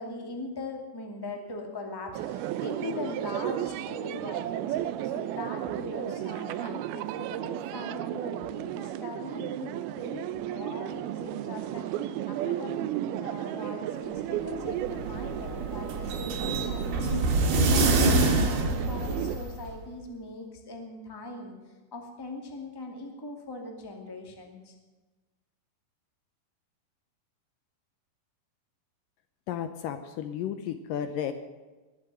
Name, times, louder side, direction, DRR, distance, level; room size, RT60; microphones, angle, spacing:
voice 1, 0.0-4.8 5.0-11.9 12.3-17.4 17.7-21.5 21.9-24.7, left 2 dB, 10° left, 2 dB, 1.6 m, -40 dB
sound 1, 2.1-19.4, right 12 dB, 90° right, 2.6 m, -34 dB
sound 2, 14.6-19.7, right 2 dB, 60° right, 3.6 m, -26 dB
voice 2, 29.5-31.3, left 9 dB, 75° left, 9 dB, 2.3 m, -33 dB
21.0 x 7.5 x 9.1 m, 1.2 s
omnidirectional pair, 4.3 m